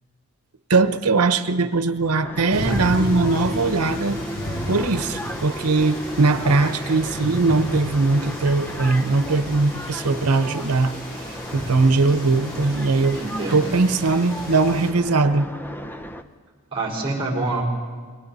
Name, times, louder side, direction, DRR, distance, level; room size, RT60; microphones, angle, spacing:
voice 1, 0.7-4.2 4.7-10.9 11.5-13.2 13.5-15.5, right 3 dB, 90° right, 10 dB, 0.9 m, -20 dB
sound 1, 2.2-16.2, equal, 10° left, 0.7 m, -35 dB
sound 2, 2.5-14.9, equal, 40° left, 3.9 m, -33 dB
voice 2, 13.1-13.7 16.7-17.6, right 2 dB, 25° right, 0 dB, 4.8 m, -26 dB
28.5 x 23.5 x 4.2 m, 1.6 s
head